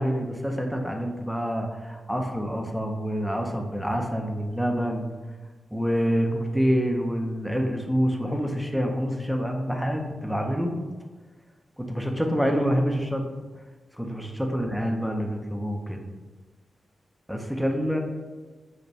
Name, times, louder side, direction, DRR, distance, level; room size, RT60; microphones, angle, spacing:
voice 1, 0.0-5.1 5.7-10.7 11.8-13.2 14.0-16.0 17.3-18.0, equal, ahead, 2 dB, 0.4 m, -27 dB
5.0 x 2.1 x 4.7 m, 1.3 s
wide cardioid pair, 160°, 0 cm